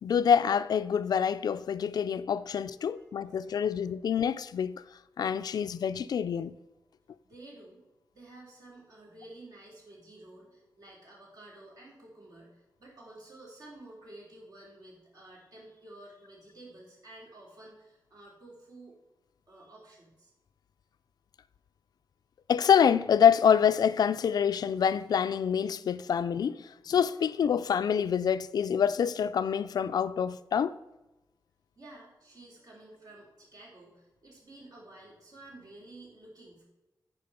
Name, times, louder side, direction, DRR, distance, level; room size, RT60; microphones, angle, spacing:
voice 1, 0.0-4.8 5.2-6.6 22.5-30.8, left 7 dB, 75° left, 0.4 m, -26 dB
voice 2, 2.9-3.7 5.4-5.7 7.2-7.8 8.1-19.0 19.5-20.3 31.8-36.6, right 2 dB, 65° right, 3.4 m, -52 dB
10.5 x 4.5 x 5.6 m
wide cardioid pair, 135°, 7 cm